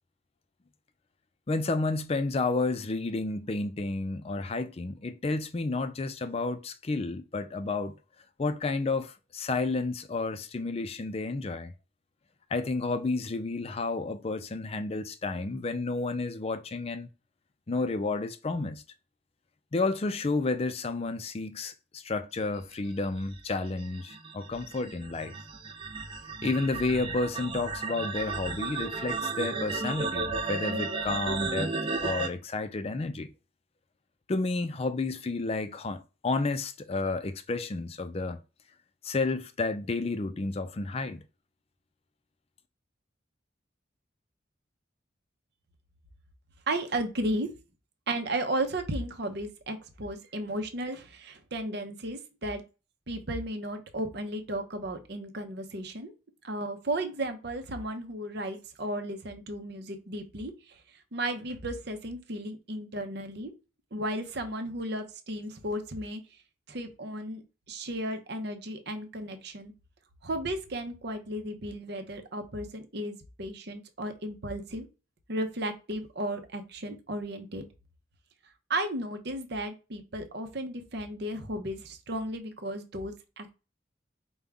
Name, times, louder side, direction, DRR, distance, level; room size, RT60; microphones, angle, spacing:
voice 1, 1.5-7.9 8.4-11.7 12.5-17.1 17.7-18.8 19.7-25.3 26.4-31.7 32.0-33.3 34.3-38.4 39.0-41.2, left 3 dB, 30° left, 0.4 m, -31 dB
sound 1, 23.0-32.3, right 4 dB, 25° right, 0.6 m, -34 dB
voice 2, 46.7-47.5 48.1-52.6 53.1-56.1 56.4-60.5 61.1-63.5 63.9-66.2 66.7-67.4 67.7-69.7 70.2-74.9 75.3-77.7 78.7-83.5, right 1 dB, 60° right, 0.8 m, -34 dB
5.3 x 2.3 x 3.5 m
head